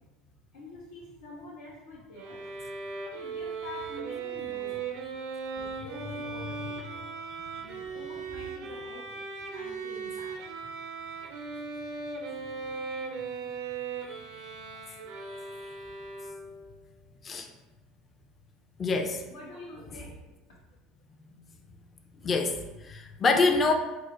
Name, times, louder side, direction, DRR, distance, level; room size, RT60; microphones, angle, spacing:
voice 1, 0.5-2.5 3.1-4.8 5.5-7.0 7.6-9.2 9.5-10.3 19.3-20.1, left 2 dB, 85° left, -6 dB, 0.7 m, -46 dB
Bowed string instrument, 2.2-16.7, right 5 dB, 70° right, 0.4 m, -38 dB
voice 2, 14.1-14.6 15.2-15.4 17.2-17.5 18.8-19.2 21.1-21.4 22.2-23.7, left 3 dB, 35° left, 4 dB, 0.4 m, -27 dB
3.6 x 2.1 x 3.0 m, 1.0 s
hypercardioid pair, 85°, 0 cm